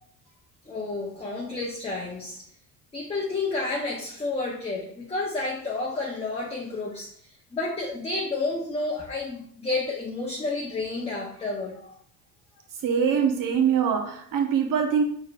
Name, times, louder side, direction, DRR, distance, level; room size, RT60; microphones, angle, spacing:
voice 1, 0.7-2.4 2.9-7.1 7.5-12.0, left 3 dB, 15° left, 0.9 m, -30 dB
voice 2, 12.8-15.0, right 7 dB, 45° right, 1.0 m, -23 dB
5.1 x 3.2 x 2.5 m
hypercardioid pair, 65°, 45 cm